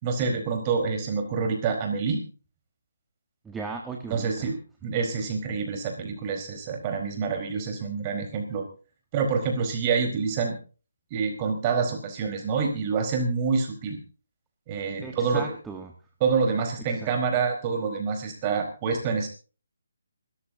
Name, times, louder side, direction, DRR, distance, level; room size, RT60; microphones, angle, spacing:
voice 1, 0.0-2.2 4.1-8.6 9.1-10.6 11.1-14.0 14.7-15.4 16.2-19.3, right 5 dB, 25° right, 3 dB, 4.6 m, -27 dB
voice 2, 3.4-4.5 15.0-15.9 16.9-17.1, right 4 dB, 5° right, 2 dB, 1.4 m, -37 dB
27.0 x 14.0 x 2.8 m, 0.37 s
figure-of-eight pair, 145°, 0 cm